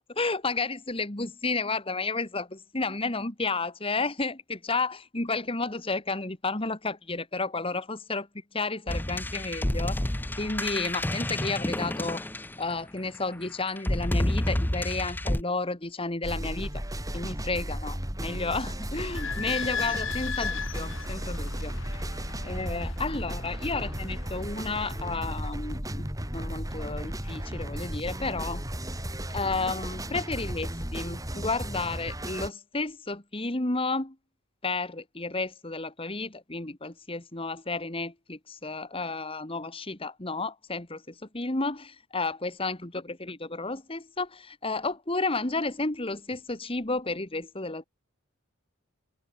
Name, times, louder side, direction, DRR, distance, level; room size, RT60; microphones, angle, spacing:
voice 1, 0.0-8.3 8.5-10.0 10.4-12.2 12.6-16.8 17.1-21.7 22.4-26.1 26.3-28.6 29.3-34.2 34.6-47.8, left 3 dB, 25° left, 1.8 m, -32 dB
sound 1, 8.9-12.9 13.8-15.4, left 1 dB, 10° left, 0.6 m, -29 dB
sound 2, 16.2-32.5, equal, 15° right, 6.1 m, -35 dB
Idling / Squeak, 18.9-25.3, left 6 dB, 65° left, 3.3 m, -37 dB
head